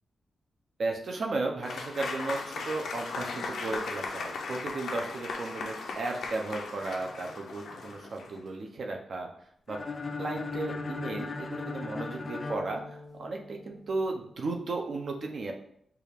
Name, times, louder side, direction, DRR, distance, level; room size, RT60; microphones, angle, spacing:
voice 1, 0.8-9.3 9.7-9.8 10.2-15.5, right 3 dB, 50° right, 2 dB, 0.5 m, -35 dB
Applause / Crowd, 1.6-8.4, left 4 dB, 85° left, 0.5 m, -37 dB
sound 1, 9.7-13.6, left 3 dB, 35° left, 0.4 m, -37 dB
4.7 x 2.4 x 3.4 m, 0.70 s
wide cardioid pair, 160°, 0 cm